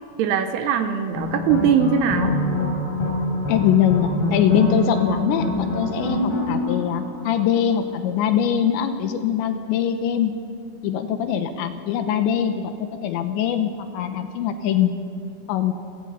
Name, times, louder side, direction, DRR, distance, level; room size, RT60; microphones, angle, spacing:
voice 1, 0.2-2.4, right 7 dB, 80° right, 8 dB, 2.4 m, -21 dB
sound 1, 1.1-7.7, left 1 dB, 55° left, 5.8 m, -25 dB
voice 2, 3.5-10.3 10.8-14.9 15.5-15.7, left 9 dB, 75° left, 8 dB, 3.1 m, -22 dB
28.5 x 16.5 x 5.6 m, 2.4 s
omnidirectional pair, 5.5 m